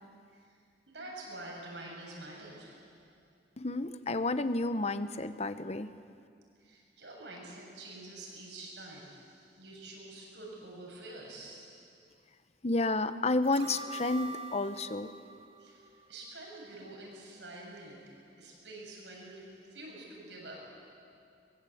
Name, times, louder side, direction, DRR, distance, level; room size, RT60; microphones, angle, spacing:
voice 1, 0.9-3.2 6.6-12.1 15.6-21.5, right 2 dB, 85° right, -2 dB, 7.3 m, -48 dB
voice 2, 3.6-5.9 12.6-15.1, left 2 dB, 40° left, 11 dB, 0.9 m, -31 dB
sound 1, 13.4-16.6 16.9-17.0, right 2 dB, 35° right, 1.7 m, -45 dB
22.5 x 21.5 x 8.6 m, 2.2 s
head